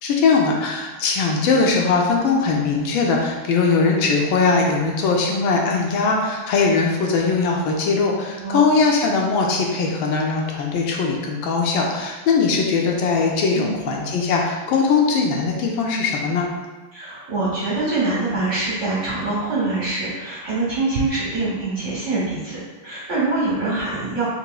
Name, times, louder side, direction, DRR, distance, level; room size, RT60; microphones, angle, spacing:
voice 1, 0.0-16.5, left 4 dB, 75° left, -1 dB, 1.3 m, -20 dB
voice 2, 13.5-14.0 16.9-24.3, right 3 dB, 55° right, -7 dB, 0.8 m, -24 dB
5.3 x 2.9 x 2.2 m, 1.2 s
omnidirectional pair, 2.4 m